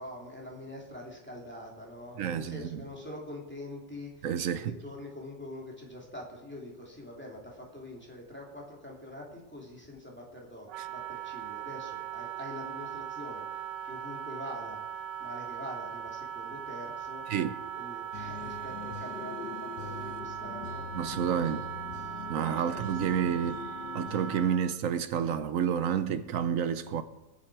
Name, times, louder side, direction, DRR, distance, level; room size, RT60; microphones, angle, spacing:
voice 1, 0.0-4.3 4.7-13.6 13.8-14.8 15.2-17.2 17.7-20.9 21.2-21.7 22.5-23.4, left 1 dB, 5° left, 2.8 m, -44 dB
voice 2, 2.2-2.8 4.2-4.7 17.3-17.5 20.9-21.6 22.3-23.6 23.9-27.0, right 8 dB, 60° right, 0.9 m, -29 dB
Wind instrument woodwind instrument, 10.7-24.8, right 10 dB, 80° right, 1.2 m, -39 dB
sound 1, 18.1-24.5, left 9 dB, 75° left, 1.3 m, -43 dB
20.5 x 7.3 x 4.8 m
omnidirectional pair, 1.9 m